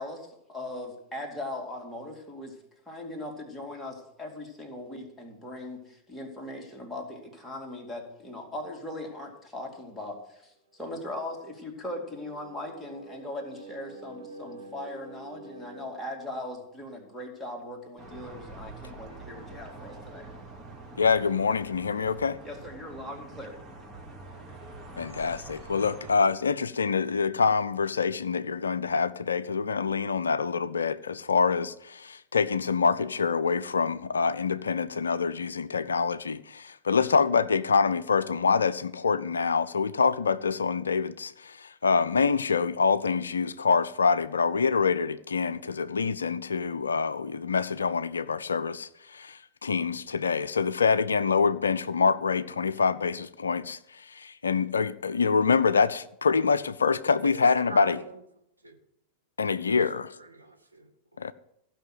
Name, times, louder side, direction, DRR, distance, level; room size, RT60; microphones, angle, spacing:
voice 1, 0.0-2.6 2.9-20.3 22.4-23.6, left 1 dB, 5° left, 2.6 m, -39 dB
sound 1, 11.1-15.8, right 2 dB, 65° right, 2.1 m, -47 dB
sound 2, 18.0-26.1, right 2 dB, 20° right, 2.4 m, -45 dB
voice 2, 21.0-22.4 25.0-58.0 59.4-60.1 61.2-61.3, left 5 dB, 70° left, 0.4 m, -26 dB
voice 3, 57.2-58.1 58.6-58.8 59.5-61.3, right 1 dB, 85° right, 1.3 m, -42 dB
15.0 x 5.7 x 7.7 m
figure-of-eight pair, 90°, 0 cm